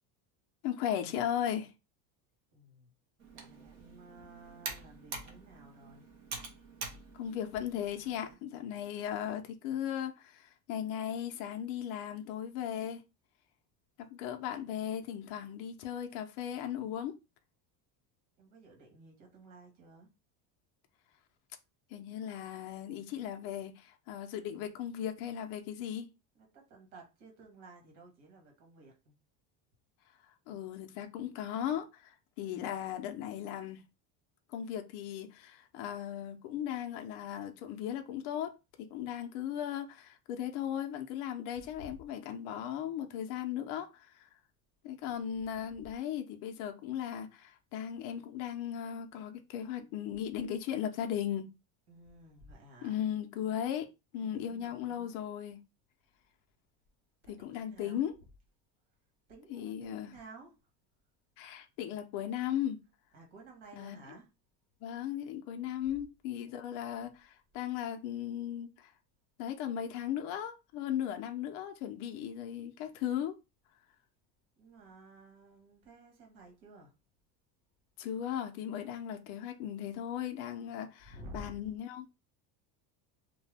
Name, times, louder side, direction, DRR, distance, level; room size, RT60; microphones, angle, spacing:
voice 1, 0.6-1.7 7.1-13.0 14.0-17.1 21.9-26.1 30.5-33.8 34.5-44.3 44.8-51.5 52.8-53.9 54.1-55.6 57.3-58.1 59.5-60.1 61.4-62.8 63.8-64.0 64.8-68.9 69.4-73.4 78.0-82.1, left 10 dB, 50° left, 0.5 m, -37 dB
voice 2, 2.5-2.9 3.3-6.1 18.4-20.1 26.3-29.1 41.8-42.0 51.9-53.0 54.2-55.2 57.2-58.0 59.3-60.6 63.1-64.3 66.5-66.6 74.6-76.9 81.0-81.7, right 1 dB, 80° right, 1.5 m, -54 dB
Computer keyboard, 3.2-8.3, right 4 dB, 40° right, 0.7 m, -46 dB
2.7 x 2.2 x 3.3 m
cardioid pair, 175°, 43 cm